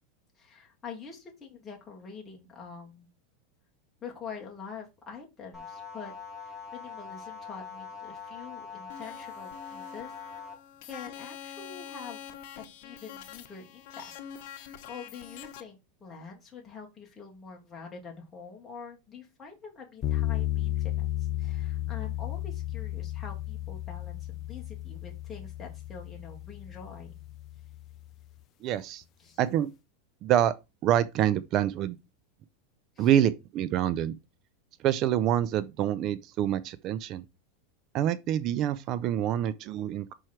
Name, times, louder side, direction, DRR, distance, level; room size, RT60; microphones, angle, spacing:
voice 1, 0.4-3.1 4.0-10.2 10.8-27.2 29.2-29.4 33.0-33.2, left 5 dB, 15° left, 2.4 m, -45 dB
sound 1, 5.5-10.5, left 6 dB, 10° right, 3.1 m, -43 dB
sound 2, 8.9-15.6, left 9 dB, 60° left, 1.1 m, -45 dB
sound 3, 20.0-28.2, left 15 dB, 35° left, 0.5 m, -34 dB
voice 2, 28.6-29.0 29.4-29.7 30.2-30.5 30.8-32.0 33.0-34.1 34.8-37.2 37.9-40.1, right 11 dB, 40° right, 0.4 m, -26 dB
6.2 x 4.5 x 4.5 m
supercardioid pair, 140°, 0 cm